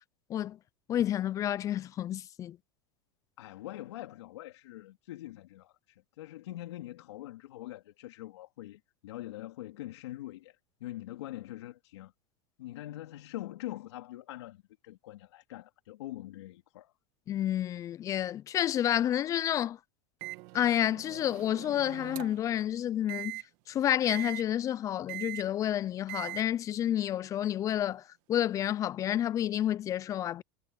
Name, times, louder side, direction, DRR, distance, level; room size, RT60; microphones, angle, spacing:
voice 1, 0.9-2.6 17.3-19.8 20.5-23.4 23.7-28.0 28.3-30.4, left 11 dB, 25° left, 0.3 m, -30 dB
voice 2, 3.4-12.1 12.6-16.9, left 15 dB, 80° left, 3.3 m, -44 dB
Microwave oven, 20.2-22.5 23.1-23.4 24.1-24.4 25.1-25.4 26.1-26.4, right 21 dB, 55° right, 1.5 m, -41 dB
supercardioid pair, 135°, 14 cm